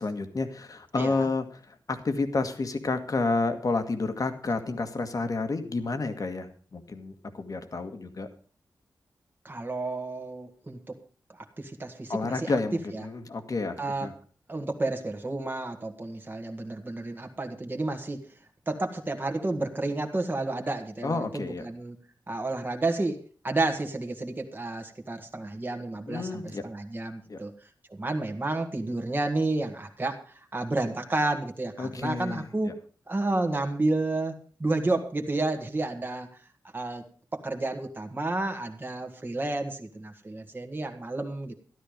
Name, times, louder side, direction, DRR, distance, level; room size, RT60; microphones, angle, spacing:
voice 1, 0.0-8.3 12.1-14.1 21.0-21.7 26.1-26.6 27.3-27.4 31.8-32.7, left 3 dB, 55° left, 8 dB, 1.7 m, -30 dB
voice 2, 1.0-1.3 9.4-11.0 11.3-12.5 12.9-13.0 13.8-14.1 14.5-18.2 18.7-22.0 22.3-27.5 27.9-32.7 33.1-36.3 36.7-37.0 37.3-41.5, right 2 dB, 25° right, 4 dB, 1.8 m, -31 dB
12.5 x 12.5 x 5.1 m, 0.41 s
wide cardioid pair, 90°, 7 cm